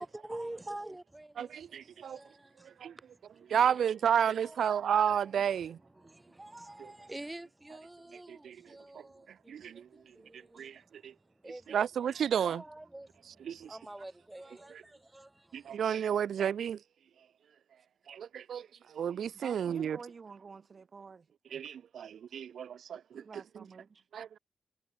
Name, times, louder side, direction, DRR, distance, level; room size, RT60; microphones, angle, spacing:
voice 1, 0.0-3.1 3.3-3.9 4.4-4.8 5.2-5.4 6.0-10.9 11.4-11.8 12.2-15.7, right 1 dB, 10° right, 1.9 m, -47 dB
voice 2, 1.4-2.2 2.6-3.0 3.5-5.8 6.8-6.9 8.1-11.1 11.7-12.6 13.3-13.8 14.7-14.8 15.5-16.8 18.1-20.0 21.5-23.6 24.1-24.4, right 8 dB, 70° right, 0.4 m, -32 dB
voice 3, 19.3-21.3 23.1-24.0, right 5 dB, 35° right, 2.0 m, -50 dB
wide cardioid pair, 150°, 0 cm